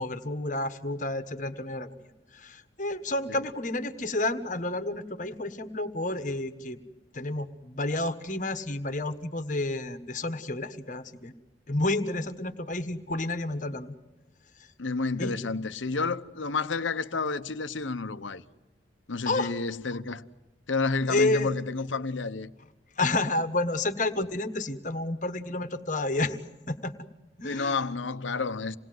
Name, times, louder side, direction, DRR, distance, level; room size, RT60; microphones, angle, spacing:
voice 1, 0.0-2.1 2.3-6.8 7.1-11.3 11.7-13.9 15.2-15.3 19.2-19.5 21.1-21.6 23.0-26.4 26.7-26.9 27.4-27.8, left 2 dB, 40° left, 1.4 m, -30 dB
voice 2, 14.8-18.4 19.1-20.3 20.7-22.5 27.4-28.8, left 4 dB, 80° left, 1.0 m, -30 dB
27.5 x 19.5 x 7.9 m
head